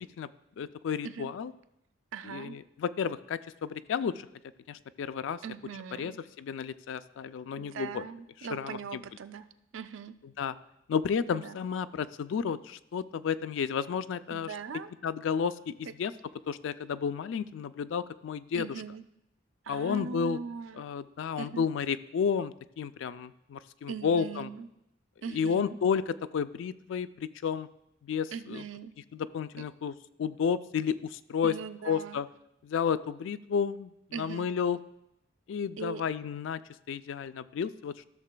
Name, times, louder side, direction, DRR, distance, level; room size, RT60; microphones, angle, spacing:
voice 1, 0.6-1.5 2.3-4.3 4.7-5.4 6.0-8.0 8.5-8.8 10.4-10.6 10.9-14.5 15.0-16.1 16.5-18.7 19.7-20.4 20.8-24.5 25.3-27.7 28.0-28.6 29.1-31.5 31.9-32.3 32.6-33.9 34.2-34.8 35.5-36.6 36.9-38.0, left 6 dB, 70° left, 14 dB, 0.3 m, -32 dB
voice 2, 2.1-2.6 5.4-6.2 7.6-9.5 9.7-10.2 11.2-11.6 14.3-14.9 18.5-19.0 19.6-20.8 21.4-21.6 23.9-24.7 25.2-25.8 28.3-28.9 29.6-29.7 31.4-32.2 34.1-34.5 35.8-36.0, right 6 dB, 75° right, 11 dB, 0.4 m, -40 dB
14.5 x 6.6 x 2.2 m, 0.83 s
head